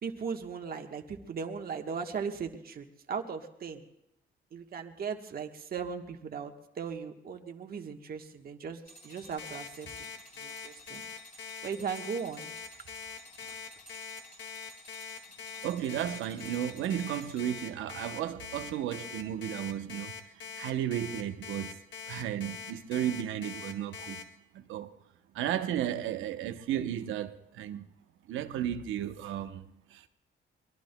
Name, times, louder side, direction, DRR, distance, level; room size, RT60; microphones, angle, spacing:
voice 1, 0.0-3.8 4.5-9.9 10.4-11.0 11.6-12.5, right 6 dB, 50° right, 1.2 m, -38 dB
sound 1, 8.8-17.9, left 1 dB, 40° left, 3.8 m, -54 dB
Alarm, 9.4-24.2, left 7 dB, 70° left, 1.9 m, -43 dB
voice 2, 15.6-20.1 20.6-21.8 22.1-24.2 24.5-24.9 25.3-27.9 28.3-29.6 29.9-30.0, right 11 dB, 85° right, 0.9 m, -34 dB
23.5 x 20.5 x 2.2 m
cardioid pair, 90°, 20 cm